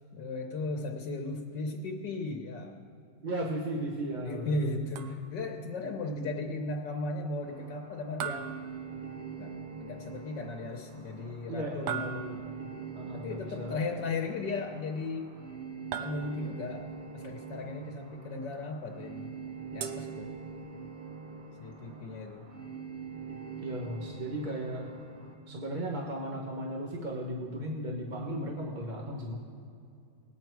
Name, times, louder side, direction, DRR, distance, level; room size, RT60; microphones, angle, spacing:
voice 1, 0.1-2.8 4.2-8.5 9.4-12.4 13.1-15.3 16.0-19.3 19.7-20.3 21.6-22.5, left 2 dB, 80° left, 2 dB, 1.6 m, -36 dB
voice 2, 3.2-4.6 11.5-12.1 12.9-13.8 23.6-24.9 25.5-29.4, right 1 dB, 30° right, -2 dB, 1.1 m, -36 dB
sound 1, 5.0-5.6 8.2-9.4 11.9-12.7 15.9-16.7 19.8-20.8, right 8 dB, 75° right, 1.3 m, -40 dB
sound 2, 7.4-25.3, right 5 dB, 60° right, 1.9 m, -44 dB
20.5 x 8.6 x 4.6 m, 2.5 s
omnidirectional pair, 1.9 m